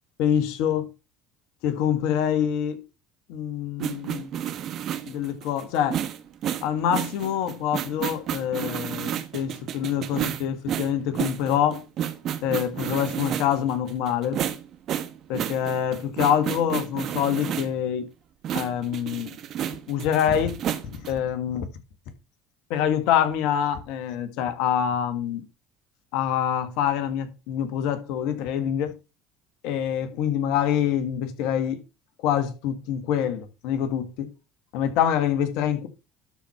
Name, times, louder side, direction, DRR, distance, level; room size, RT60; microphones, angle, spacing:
voice 1, 0.2-0.9 1.6-2.8 3.3-4.3 5.1-6.0 6.6-11.8 12.4-14.4 15.3-18.1 18.5-19.4 19.9-20.6 21.0-21.7 22.7-25.4 26.1-28.9 29.6-31.8 32.2-34.3 34.7-35.9, left 9 dB, 70° left, 1.7 m, -25 dB
sound 1, 3.8-17.8 18.4-21.2, right 10 dB, 55° right, 1.3 m, -31 dB
12.5 x 4.5 x 5.7 m
hypercardioid pair, 80°, 0 cm